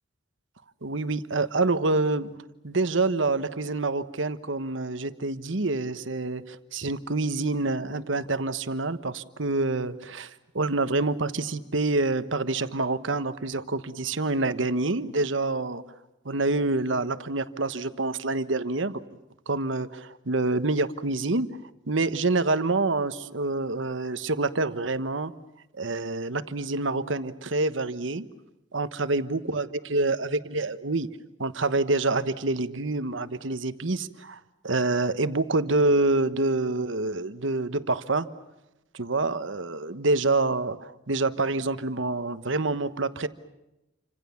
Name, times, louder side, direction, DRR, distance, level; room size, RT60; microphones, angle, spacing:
voice 1, 0.8-2.3 2.6-15.8 16.2-19.0 19.5-21.5 21.9-25.3 25.8-28.2 28.7-31.1 31.4-34.4 34.6-38.3 38.9-43.3, right 2 dB, 70° right, 12 dB, 1.2 m, -27 dB
29.0 x 26.0 x 7.2 m, 0.95 s
head